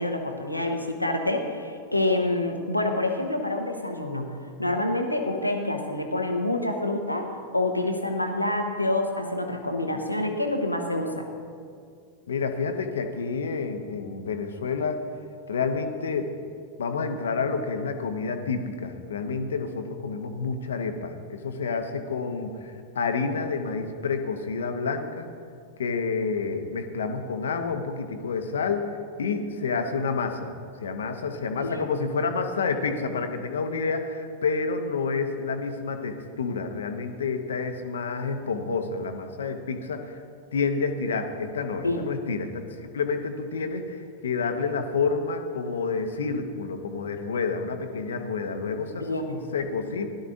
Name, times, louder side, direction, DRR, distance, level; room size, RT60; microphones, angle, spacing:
voice 1, 0.0-4.3 4.6-11.3 31.6-31.9 41.8-42.1 48.9-49.4, left 2 dB, 85° left, 4 dB, 1.0 m, -27 dB
voice 2, 12.3-15.0 15.5-16.3 16.8-22.5 22.9-25.3 25.8-28.8 29.2-30.5 30.8-40.1 40.5-42.6 42.9-49.2 49.5-50.1, left 4 dB, 65° left, 7 dB, 0.9 m, -29 dB
17.0 x 11.5 x 2.6 m, 2.2 s
figure-of-eight pair, 90°, 0 cm